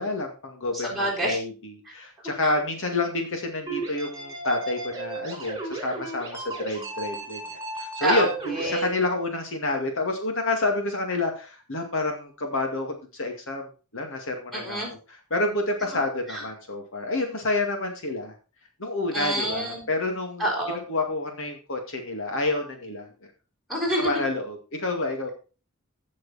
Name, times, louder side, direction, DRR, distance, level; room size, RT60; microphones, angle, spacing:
voice 1, 0.0-14.8 15.3-18.3 18.8-20.5 20.9-23.1 24.0-25.3, left 2 dB, 60° left, 3 dB, 2.2 m, -29 dB
voice 2, 0.7-1.4 2.4-2.5 8.0-8.2 8.5-8.9 14.5-14.9 16.3-16.4 19.1-19.8 20.4-20.8 23.7-24.2, right 1 dB, ahead, -3 dB, 5.5 m, -27 dB
sound 1, 3.7-8.7, right 3 dB, 15° right, 4.9 m, -35 dB
16.0 x 6.5 x 4.2 m, 0.34 s
head